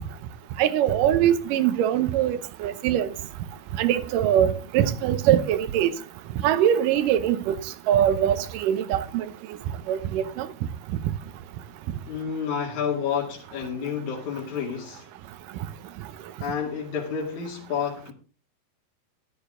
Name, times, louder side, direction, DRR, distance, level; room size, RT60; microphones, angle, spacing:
voice 1, 0.6-3.1 3.8-5.9 6.4-7.6 7.9-9.3 9.9-10.5, right 10 dB, 75° right, 2.4 m, -22 dB
voice 2, 12.1-15.1 16.4-18.1, left 7 dB, 55° left, 3.5 m, -30 dB
13.5 x 12.0 x 3.8 m
omnidirectional pair, 4.1 m